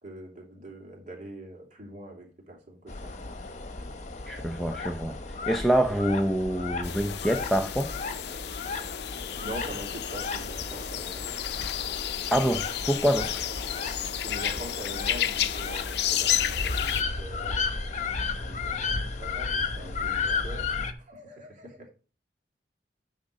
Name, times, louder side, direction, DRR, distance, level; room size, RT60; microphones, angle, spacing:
voice 1, 0.0-3.3 9.4-11.3 13.9-17.8 18.4-20.7 21.0-21.9, right 1 dB, 45° right, 2.9 m, -43 dB
sound 1, 2.9-20.9, left 4 dB, 45° left, 1.0 m, -34 dB
voice 2, 4.3-5.2 5.5-7.9 12.3-13.3, equal, ahead, 0.6 m, -26 dB
sound 2, 6.8-17.0, left 11 dB, 70° left, 0.6 m, -32 dB
10.0 x 3.7 x 6.5 m
head